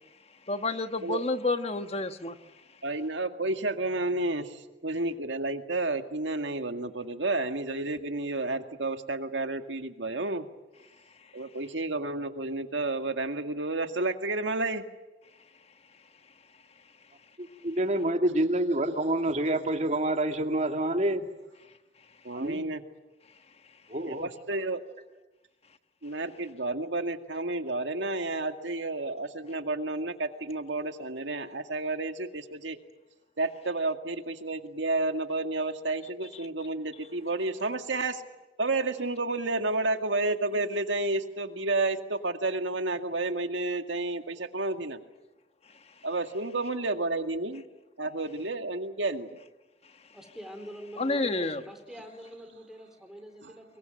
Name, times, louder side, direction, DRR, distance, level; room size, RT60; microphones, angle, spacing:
voice 1, 0.5-2.4 51.0-51.6, left 2 dB, 35° left, 9 dB, 1.3 m, -29 dB
voice 2, 2.8-10.5 11.3-14.8 22.2-22.8 24.0-24.8 26.0-32.8 33.4-38.2 38.6-45.0 46.0-47.6 48.0-49.3 53.4-53.5, right 2 dB, 85° right, 7 dB, 2.0 m, -31 dB
voice 3, 17.4-21.3 22.3-22.7 23.9-24.3, right 1 dB, 40° right, 5 dB, 2.2 m, -27 dB
voice 4, 50.1-53.8, equal, 5° right, 5 dB, 4.1 m, -45 dB
25.0 x 22.0 x 9.0 m, 1.1 s
head